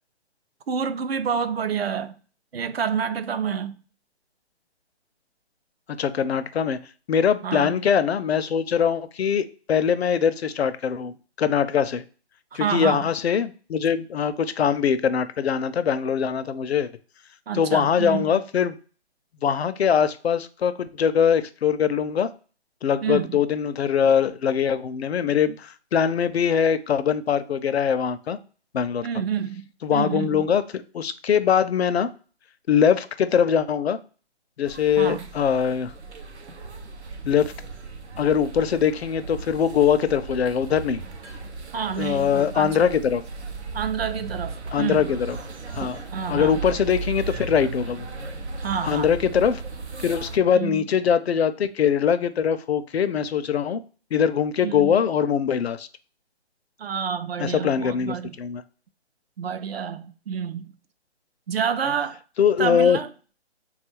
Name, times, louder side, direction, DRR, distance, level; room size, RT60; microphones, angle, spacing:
voice 1, 0.7-2.1 2.5-3.7 7.4-7.7 12.5-13.1 17.5-18.3 23.0-23.4 29.0-29.6 29.9-30.5 35.0-35.3 41.7-42.9 43.7-45.1 46.1-46.6 48.6-49.1 50.5-50.9 54.6-55.0 56.8-58.3 59.4-60.7 61.5-62.2 62.6-63.1, right 7 dB, 65° right, 0.4 m, -28 dB
voice 2, 6.0-6.8 7.1-12.0 12.5-16.9 17.5-18.8 19.4-22.3 22.8-28.4 28.7-29.1 29.8-32.1 32.7-34.0 34.6-35.9 37.2-37.5 38.2-41.0 42.0-43.2 44.7-45.4 45.7-46.0 46.3-48.1 48.8-49.6 50.0-53.8 54.1-55.9 57.4-58.6 62.4-63.0, left 7 dB, 70° left, 0.5 m, -22 dB
sound 1, 34.7-50.4, right 4 dB, 85° right, 0.8 m, -36 dB
3.5 x 2.3 x 4.4 m
hypercardioid pair, 175°, 33 cm